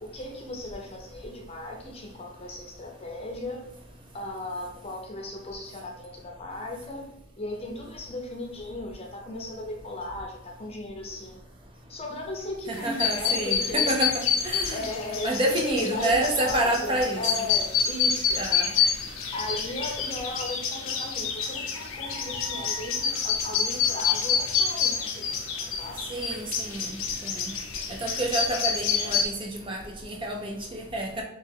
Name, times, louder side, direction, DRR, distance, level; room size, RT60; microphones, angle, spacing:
voice 1, 0.0-3.6 4.1-7.1 7.4-11.4 11.9-13.9 14.7-18.5 19.3-26.0, left 1 dB, 30° left, 1 dB, 0.7 m, -36 dB
sound 1, 12.7-29.3, left 6 dB, 75° left, 0.6 m, -28 dB
voice 2, 12.7-14.1 14.4-14.8 15.2-17.2 18.4-18.7 26.1-27.0 27.2-27.5 28.0-31.2, right 1 dB, 25° right, 0 dB, 0.5 m, -28 dB
3.2 x 3.2 x 3.4 m, 0.79 s
head